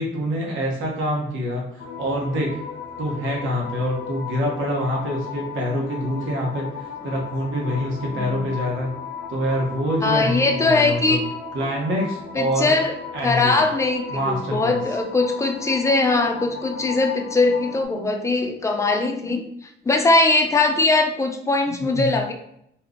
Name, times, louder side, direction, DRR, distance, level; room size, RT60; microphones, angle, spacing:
voice 1, 0.0-2.5 3.0-8.9 9.3-11.2 11.5-12.7 13.1-13.6 14.1-14.8 21.7-22.1, equal, 80° right, -1 dB, 1.1 m, -26 dB
sound 1, 1.8-17.8, left 6 dB, 60° left, 0.7 m, -36 dB
voice 2, 8.1-8.5 10.0-11.2 12.3-22.3, left 3 dB, 15° left, 4 dB, 0.5 m, -21 dB
2.7 x 2.3 x 3.6 m, 0.73 s
cardioid pair, 90°, 20 cm